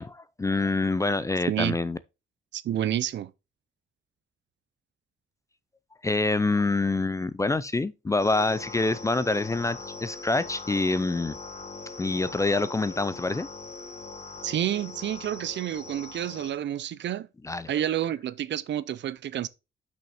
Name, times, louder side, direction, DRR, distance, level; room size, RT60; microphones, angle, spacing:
voice 1, 0.0-2.0 6.0-11.4 12.0-13.5 17.4-17.7, left 3 dB, 15° left, 0.4 m, -26 dB
voice 2, 2.5-3.3 14.4-17.3 17.7-19.5, right 11 dB, 65° right, 0.6 m, -29 dB
sound 1, 8.2-16.5, left 3 dB, 30° left, 1.4 m, -41 dB
6.1 x 6.0 x 4.2 m
wide cardioid pair, 150°, 20 cm